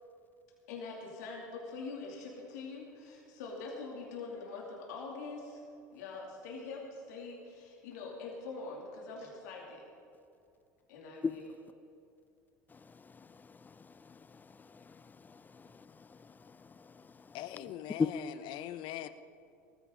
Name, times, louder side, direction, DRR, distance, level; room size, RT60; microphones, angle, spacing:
voice 1, 0.7-5.6 5.9-9.8 10.9-11.5, left 3 dB, 75° left, 2.8 m, -44 dB
voice 2, 12.7-17.4 18.0-18.1, left 5 dB, 20° left, 0.5 m, -40 dB
voice 3, 17.3-19.1, left 12 dB, 60° left, 0.8 m, -42 dB
19.0 x 14.5 x 3.9 m
hypercardioid pair, 75°, 9 cm